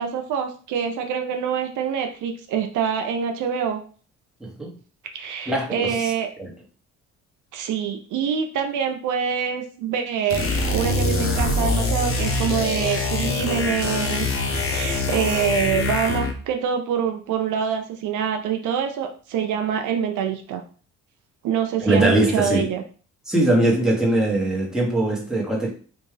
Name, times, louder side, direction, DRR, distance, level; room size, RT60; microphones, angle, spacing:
voice 1, 0.0-3.8 5.1-6.3 7.5-14.3 14.6-20.6 21.4-22.8, right 7 dB, 80° right, 0.6 m, -25 dB
voice 2, 4.4-4.7 5.5-6.1 6.4-6.5 21.8-22.7 23.3-25.7, right 1 dB, ahead, 1.2 m, -21 dB
sound 1, 10.3-16.4, left 3 dB, 45° left, 0.7 m, -24 dB
3.5 x 2.6 x 3.3 m
cardioid pair, 90°, 30 cm